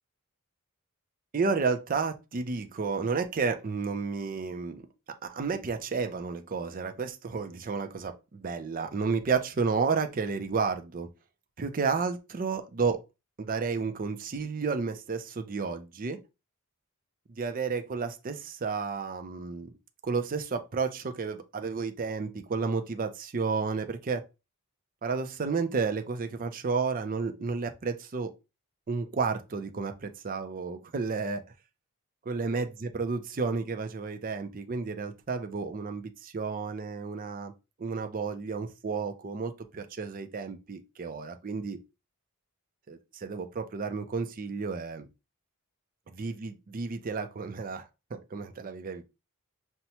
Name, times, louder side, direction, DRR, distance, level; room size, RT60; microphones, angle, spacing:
voice 1, 1.3-4.9 5.2-11.1 11.6-13.0 13.4-16.2 17.3-19.7 20.0-24.2 25.0-28.3 28.9-31.4 32.3-37.5 37.8-41.8 42.9-45.1 46.2-49.0, right 4 dB, 40° right, 0.5 m, -31 dB
5.5 x 2.1 x 2.9 m
head